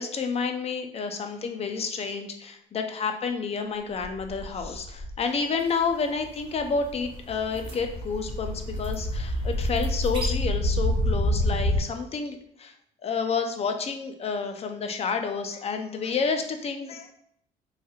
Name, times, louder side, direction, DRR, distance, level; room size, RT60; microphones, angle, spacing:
voice 1, 0.0-12.7 13.0-17.1, left 5 dB, 35° left, 6 dB, 0.6 m, -30 dB
sound 1, 3.9-5.1 5.8-5.9 6.2-11.8, equal, 60° left, 1.4 m, -28 dB
sound 2, 5.2-10.3, equal, 30° right, 1.3 m, -45 dB
5.2 x 3.3 x 2.4 m, 0.71 s
cardioid pair, 110°, 17 cm